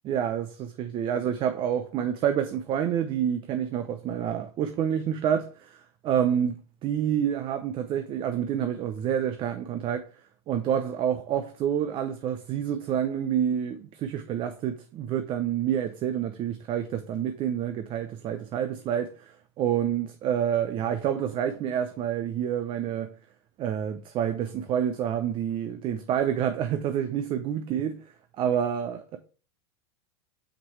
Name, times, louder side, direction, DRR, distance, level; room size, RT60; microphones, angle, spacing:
voice 1, 0.0-6.5 6.8-10.1 10.5-23.1 23.6-28.0 28.4-29.2, right 9 dB, 40° right, 0.8 m, -28 dB
7.4 x 5.9 x 3.3 m
hypercardioid pair, 115°, 14 cm